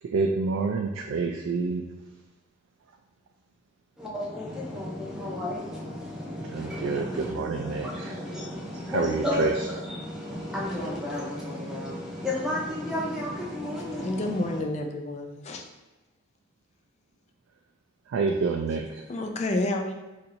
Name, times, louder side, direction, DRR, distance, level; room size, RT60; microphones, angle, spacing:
voice 1, 0.0-1.8 6.5-8.2 8.7-9.7 18.1-19.0, right 4 dB, 80° right, 2 dB, 0.3 m, -28 dB
voice 2, 4.0-14.6, left 1 dB, ahead, -5 dB, 0.6 m, -33 dB
voice 3, 13.9-15.6 19.1-19.9, left 1 dB, 35° left, 3 dB, 0.3 m, -29 dB
2.6 x 2.5 x 4.2 m, 1.1 s
head